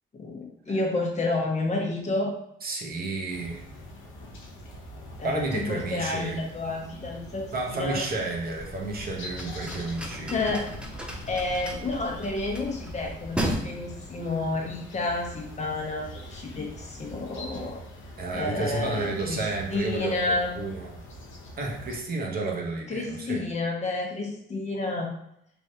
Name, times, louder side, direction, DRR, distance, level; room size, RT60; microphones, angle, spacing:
voice 1, 0.1-2.4 5.2-8.0 10.3-10.6 11.3-17.8 18.3-20.6 22.9-25.1, left 2 dB, 35° left, 0 dB, 0.7 m, -30 dB
voice 2, 2.6-3.6 5.2-6.4 7.5-10.7 18.2-20.9 21.6-23.4, right 3 dB, 50° right, 0 dB, 0.7 m, -31 dB
sound 1, 3.3-22.0, equal, 85° left, 0.7 m, -43 dB
sound 2, 8.5-13.6, right 1 dB, 5° right, 0.4 m, -35 dB
3.3 x 2.4 x 2.6 m, 0.73 s
cardioid pair, 90°, 20 cm